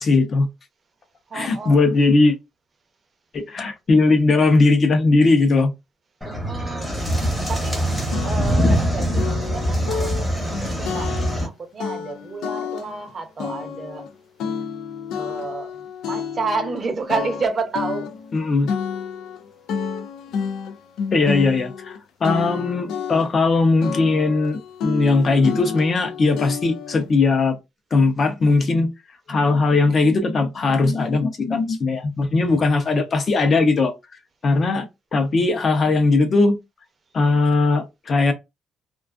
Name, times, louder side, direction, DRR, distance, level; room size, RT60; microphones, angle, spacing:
voice 1, 0.0-0.5 1.3-2.4 3.3-5.7 18.3-18.7 21.1-27.6 27.9-28.9 29.3-33.9 34.4-34.8 35.1-36.6 37.1-38.3, left 3 dB, 35° left, 0.6 m, -19 dB
voice 2, 1.3-1.8 6.2-6.9 7.2-7.8 8.2-11.1 11.4-14.0 15.1-15.7 16.0-18.1, right 4 dB, 30° right, 0.6 m, -30 dB
sound 1, 6.2-11.5, equal, 5° left, 0.9 m, -23 dB
sound 2, 7.5-7.6 8.1-8.9 9.2-11.5 11.8-13.1 13.4-16.8 17.1-22.0 22.2-23.5 23.8-27.1, left 6 dB, 85° left, 0.3 m, -30 dB
2.4 x 2.3 x 2.3 m
cardioid pair, 165°, 0 cm